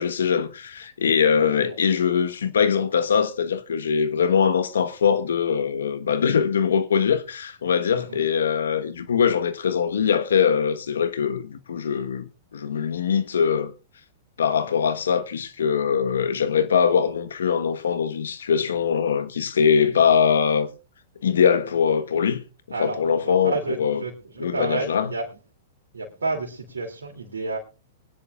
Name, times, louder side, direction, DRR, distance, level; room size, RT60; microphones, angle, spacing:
voice 1, 0.0-13.7 14.4-20.7 21.2-22.4 22.8-24.0 24.4-25.1, left 7 dB, 80° left, 1.2 m, -22 dB
voice 2, 22.7-25.3 25.9-27.6, right 3 dB, 90° right, 2.7 m, -30 dB
23.5 x 10.0 x 2.4 m
hypercardioid pair, 115°, 0 cm